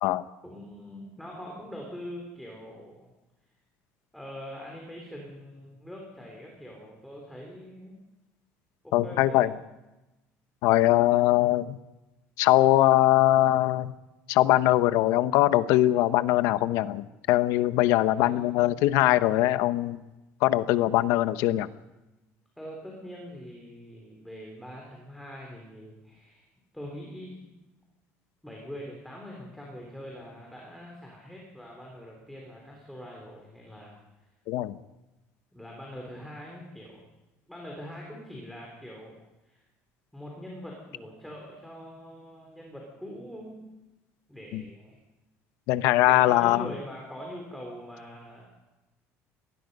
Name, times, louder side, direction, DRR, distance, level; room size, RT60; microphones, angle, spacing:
voice 1, 0.4-3.1 4.1-8.0 8.8-9.6 18.1-18.9 22.6-26.5 26.7-27.5 28.4-34.0 35.5-37.0 37.5-39.1 39.4-39.6 40.1-43.6 44.3-45.0 46.1-48.5, equal, ahead, -1 dB, 3.4 m, -43 dB
voice 2, 8.9-9.5 10.6-11.8 12.4-13.9 14.3-20.0 20.4-21.7 34.5-34.8 44.5-44.6 45.7-46.7, left 15 dB, 70° left, 13 dB, 0.9 m, -22 dB
25.5 x 19.0 x 5.4 m, 1.0 s
cardioid pair, 180°, 5 cm